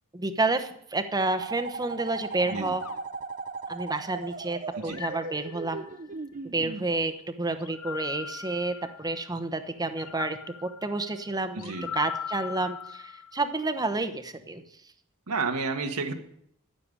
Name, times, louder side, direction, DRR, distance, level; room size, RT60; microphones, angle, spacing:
voice 1, 0.1-2.8 3.7-5.8 6.5-14.6, right 2 dB, 20° right, 8 dB, 1.0 m, -30 dB
sound 1, 1.4-6.9, right 4 dB, 40° right, 0.7 m, -38 dB
sound 2, 2.8-4.2 4.8-6.1 7.6-9.3 10.0-13.5, left 8 dB, 70° left, 0.6 m, -40 dB
voice 2, 11.5-11.9 15.3-16.2, right 4 dB, 90° right, 4 dB, 1.5 m, -31 dB
13.0 x 6.9 x 9.7 m, 0.70 s
head